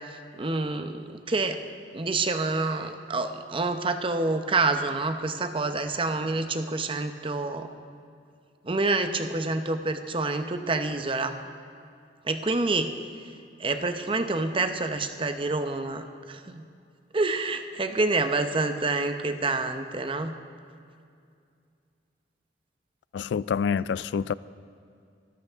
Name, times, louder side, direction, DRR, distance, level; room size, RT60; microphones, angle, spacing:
voice 1, 0.4-1.6 1.9-7.7 8.6-11.4 12.3-12.9 13.6-16.6 17.1-20.3, right 3 dB, 30° right, 0.7 m, -27 dB
voice 2, 23.1-24.3, left 6 dB, 85° left, 0.3 m, -27 dB
24.0 x 13.5 x 3.6 m
head